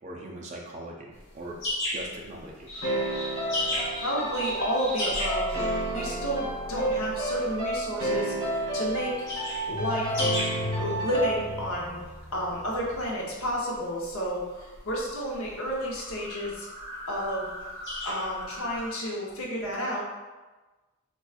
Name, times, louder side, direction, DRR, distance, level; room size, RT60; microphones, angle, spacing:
voice 1, 0.0-1.6 1.9-2.7, right 1 dB, 35° right, -1 dB, 0.5 m, -40 dB
sound 1, 1.1-18.9, left 1 dB, 55° left, 1.1 m, -37 dB
sound 2, 2.7-13.3, left 2 dB, 25° left, 0.6 m, -39 dB
sound 3, 2.8-11.7, right 1 dB, 60° right, 1.2 m, -31 dB
voice 2, 3.5-9.3 9.7-10.1 10.8-12.0 12.3-16.7 17.1-17.5 18.0-20.0, equal, 80° left, -3 dB, 0.8 m, -31 dB
4.2 x 2.3 x 2.4 m, 1.2 s
head